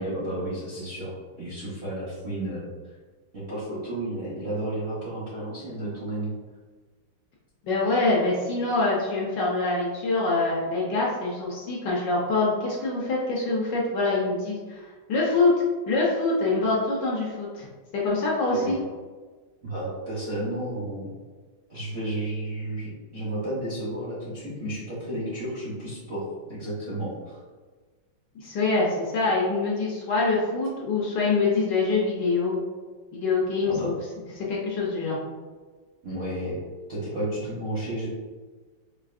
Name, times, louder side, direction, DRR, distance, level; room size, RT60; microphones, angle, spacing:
voice 1, 0.0-2.7 3.3-6.3 18.5-18.8 19.6-21.1 21.7-27.4 33.6-33.9 36.0-36.6 36.9-38.1, right 1 dB, 50° right, -10 dB, 0.7 m, -32 dB
voice 2, 7.6-14.8 15.1-15.5 15.9-17.7 18.0-18.8 28.3-32.7 33.1-34.0 34.3-35.2, left 3 dB, 70° left, -4 dB, 1.2 m, -25 dB
4.7 x 2.4 x 2.4 m, 1.4 s
omnidirectional pair, 2.3 m